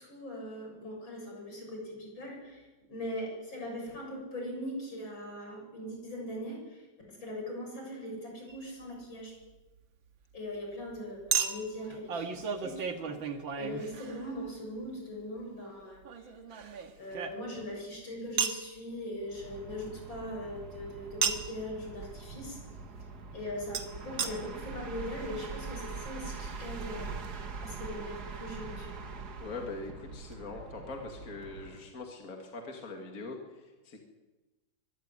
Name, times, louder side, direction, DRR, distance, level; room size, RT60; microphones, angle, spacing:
voice 1, 0.0-9.3 10.3-16.3 17.0-22.6 23.3-27.2 27.6-29.0, left 1 dB, 85° left, 0 dB, 8.1 m, -40 dB
Chink clink, 8.5-8.6 11.3-14.5 16.0-17.7 18.4-18.7 21.2-21.6 23.7-23.8 24.2-24.3 25.0-25.1 25.2-25.3, right 7 dB, 90° right, 2.3 m, -33 dB
sound 1, 19.2-31.9, right 4 dB, 55° right, 2.2 m, -43 dB
voice 2, 29.4-34.0, left 3 dB, 45° left, 2 dB, 2.7 m, -42 dB
24.0 x 14.0 x 9.8 m, 1.2 s
omnidirectional pair, 2.1 m